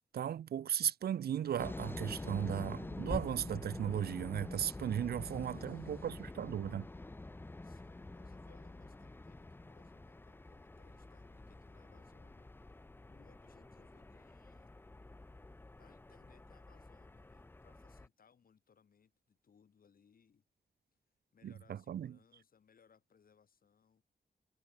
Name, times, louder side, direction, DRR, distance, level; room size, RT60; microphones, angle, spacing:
voice 1, 0.1-6.9 21.4-22.2, right 10 dB, 75° right, 0.5 m, -36 dB
sound 1, 1.6-18.1, left 2 dB, 15° left, 0.6 m, -47 dB
voice 2, 5.2-6.1 7.6-12.5 13.1-14.7 15.7-20.4 21.3-24.0, left 6 dB, 60° left, 4.6 m, -68 dB
wide cardioid pair, 155°, 16 cm